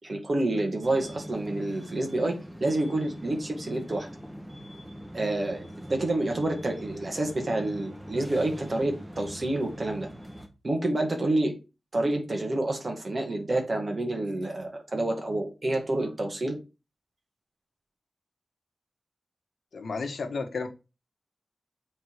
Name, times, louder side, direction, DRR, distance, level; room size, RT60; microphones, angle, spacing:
voice 1, 0.0-4.1 5.1-10.1 10.6-11.6 11.9-16.6, right 2 dB, 45° right, 2.2 m, -28 dB
sound 1, 0.8-10.5, equal, 10° right, 1.6 m, -43 dB
voice 2, 19.7-20.7, left 4 dB, 85° left, 1.3 m, -32 dB
8.0 x 3.9 x 5.0 m
wide cardioid pair, 100°, 0 cm